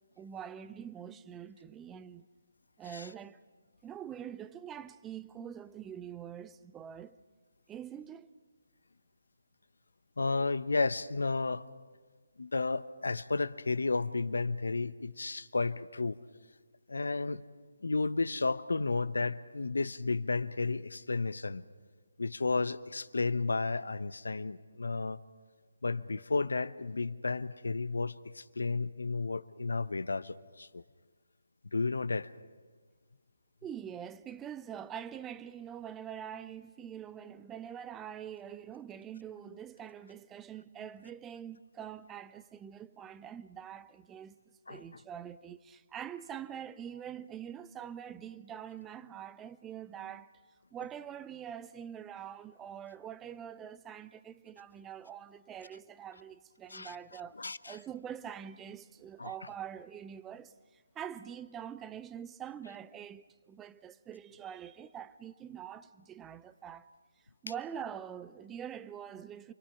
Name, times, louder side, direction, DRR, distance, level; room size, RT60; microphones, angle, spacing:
voice 1, 0.2-2.2 2.8-3.4 3.8-7.2 7.7-8.3 33.6-44.4 44.7-50.3 50.7-57.4 57.6-66.9 67.4-69.5, right 9 dB, 10° right, 0.6 m, -44 dB
voice 2, 10.2-11.7 12.4-16.2 16.9-17.4 17.8-21.7 22.2-25.2 25.8-30.8 31.7-32.3 44.7-44.8 56.7-57.0 57.4-57.8 59.2-59.3, left 3 dB, 75° left, 0.9 m, -32 dB
28.5 x 22.5 x 5.8 m
figure-of-eight pair, 150°, 0 cm